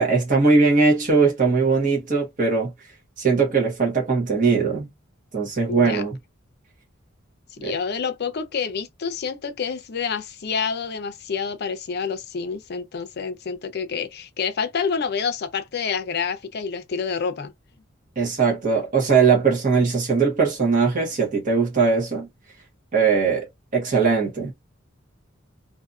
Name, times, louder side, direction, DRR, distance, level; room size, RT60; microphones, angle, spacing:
voice 1, 0.0-2.7 3.2-4.9 5.3-6.2 7.6-7.7 18.2-22.3 22.9-24.5, right 4 dB, 40° right, 1.0 m, -20 dB
voice 2, 5.7-6.0 7.6-17.5, left 6 dB, 55° left, 0.5 m, -28 dB
2.6 x 2.5 x 2.3 m
head